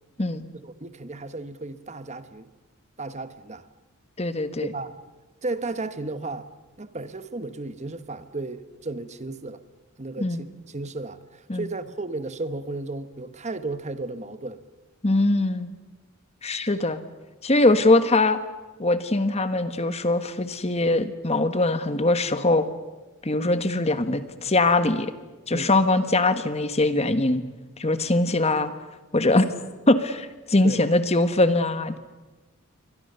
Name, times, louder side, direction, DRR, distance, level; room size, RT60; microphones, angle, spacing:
voice 1, 0.6-2.5 3.0-3.6 4.6-5.0 5.4-6.5 6.8-9.6 10.0-14.6 17.8-18.0 25.5-25.7 30.6-30.8, right 2 dB, 35° right, 12 dB, 1.1 m, -34 dB
voice 2, 4.2-4.7 10.2-10.4 11.5-11.7 15.0-15.7 16.4-17.0 17.4-18.4 18.8-22.7 23.2-25.1 25.5-27.4 27.8-28.7 29.1-29.5 29.9-32.0, left 2 dB, 30° left, 11 dB, 1.4 m, -22 dB
28.5 x 24.0 x 6.8 m, 1.2 s
head